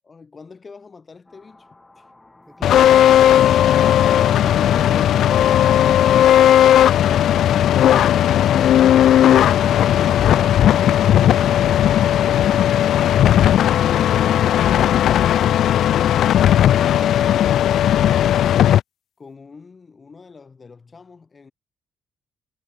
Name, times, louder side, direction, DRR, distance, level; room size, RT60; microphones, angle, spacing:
voice 1, 0.0-1.7 1.9-2.1 19.2-21.5, left 4 dB, 35° left, 1.8 m, -43 dB
sound 1, 1.3-12.9, left 2 dB, 15° left, 1.3 m, -40 dB
voice 2, 2.5-5.6 16.8-17.3, right 1 dB, 5° right, 4.1 m, -41 dB
sound 2, 2.6-18.8, left 11 dB, 70° left, 0.3 m, -15 dB
sound 3, 3.2-8.2, right 7 dB, 50° right, 5.8 m, -44 dB
cardioid pair, 90°, 0 cm